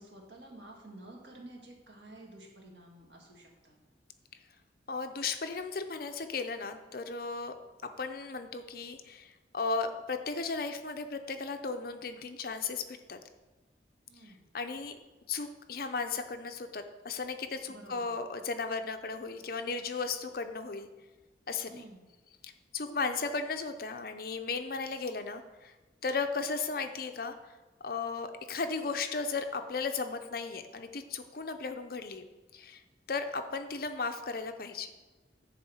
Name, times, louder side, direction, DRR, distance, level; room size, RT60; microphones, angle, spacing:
voice 1, 0.0-3.8 14.1-14.5 17.7-18.1 21.7-22.1, right 1 dB, 75° right, -1 dB, 2.0 m, -51 dB
voice 2, 4.9-7.5 8.0-13.2 14.5-15.0 15.3-20.9 21.5-21.8 22.4-25.7 26.0-27.5 27.8-32.3 32.5-32.8 33.1-34.9, left 4 dB, 55° left, 7 dB, 0.6 m, -35 dB
10.5 x 3.7 x 7.2 m, 1.2 s
head